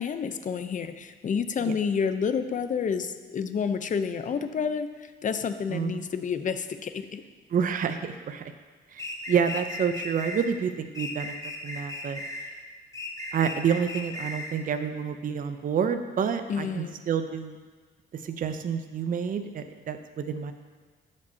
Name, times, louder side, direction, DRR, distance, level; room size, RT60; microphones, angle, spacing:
voice 1, 0.0-7.2 16.5-17.0, left 6 dB, 40° left, 10 dB, 0.6 m, -29 dB
voice 2, 7.5-8.5 8.9-11.3 11.6-12.2 13.3-17.6 18.2-20.5, right 7 dB, 45° right, 8 dB, 0.5 m, -28 dB
sound 1, 9.0-10.5 10.9-12.5 12.9-14.5, left 2 dB, 15° left, 1.2 m, -36 dB
14.5 x 5.3 x 2.7 m, 1.4 s
cardioid pair, 90°, 20 cm